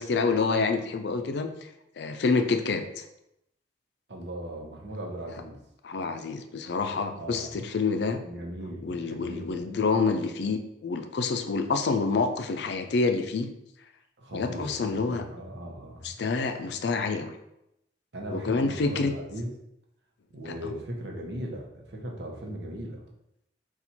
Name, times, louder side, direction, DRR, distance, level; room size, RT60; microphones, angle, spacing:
voice 1, 0.0-1.5 2.0-3.0 5.8-8.2 8.8-13.5 14.3-15.2 16.0-17.3 18.3-19.1 20.6-20.7, left 4 dB, 70° left, 7 dB, 0.4 m, -27 dB
voice 2, 4.1-5.6 7.1-7.6 8.2-9.5 14.2-14.7 15.0-16.1 18.1-19.5 20.3-23.0, right 1 dB, 70° right, 0 dB, 0.8 m, -38 dB
4.3 x 2.4 x 4.1 m, 0.83 s
head